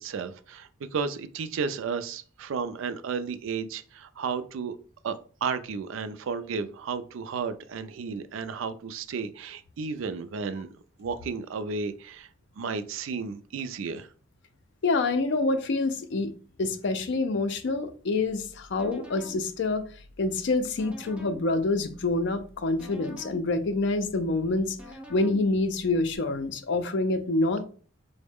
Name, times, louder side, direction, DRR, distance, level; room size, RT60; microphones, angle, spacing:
voice 1, 0.0-4.8 5.0-10.7 11.0-12.3 12.6-14.1, right 5 dB, 70° right, 0.3 m, -33 dB
voice 2, 14.8-16.3 16.6-19.9 20.2-24.8 25.1-27.6, left 2 dB, 60° left, 0.4 m, -27 dB
sound 1, 18.3-26.2, equal, 5° right, 0.5 m, -48 dB
3.7 x 2.1 x 3.5 m
head